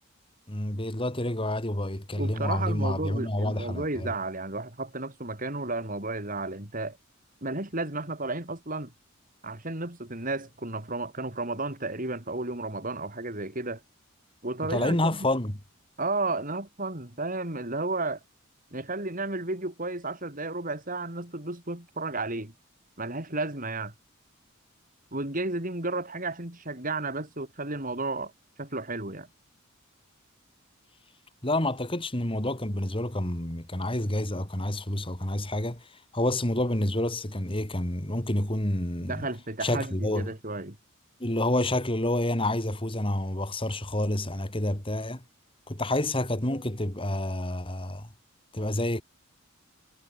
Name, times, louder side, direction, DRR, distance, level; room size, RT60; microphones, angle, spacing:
voice 1, 0.5-4.1 14.7-15.6 31.4-35.8 36.1-39.3 39.6-40.3 41.2-45.2 45.7-48.1 48.5-49.0, left 1 dB, 25° left, 3.2 m, -28 dB
voice 2, 2.2-7.0 7.4-8.9 9.4-13.8 14.4-15.3 16.0-18.2 18.7-22.5 23.0-23.9 25.1-28.3 28.6-29.3 39.1-40.8, right 2 dB, 40° right, 5.0 m, -33 dB
head